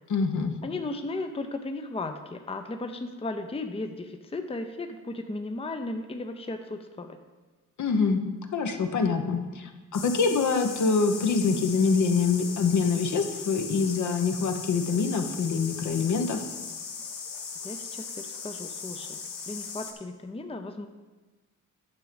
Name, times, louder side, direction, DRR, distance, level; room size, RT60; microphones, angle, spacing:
voice 1, 0.1-0.5 7.8-8.2 8.5-16.4, left 5 dB, 65° left, 5 dB, 1.0 m, -25 dB
voice 2, 0.6-7.2 17.6-19.2 19.5-20.9, left 2 dB, 20° left, 6 dB, 0.7 m, -35 dB
sound 1, 9.9-19.9, left 5 dB, 90° left, 1.2 m, -38 dB
9.5 x 5.9 x 5.1 m, 1.3 s
cardioid pair, 80°, 32 cm